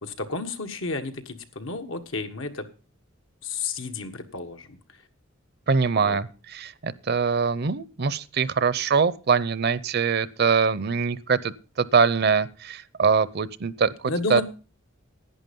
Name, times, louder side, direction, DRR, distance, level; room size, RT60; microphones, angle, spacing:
voice 1, 0.0-2.6 3.4-5.0 5.9-6.2 14.0-14.4, left 3 dB, 85° left, 1.5 m, -32 dB
voice 2, 5.7-14.4, right 5 dB, 55° right, 0.6 m, -23 dB
11.0 x 9.7 x 5.3 m
head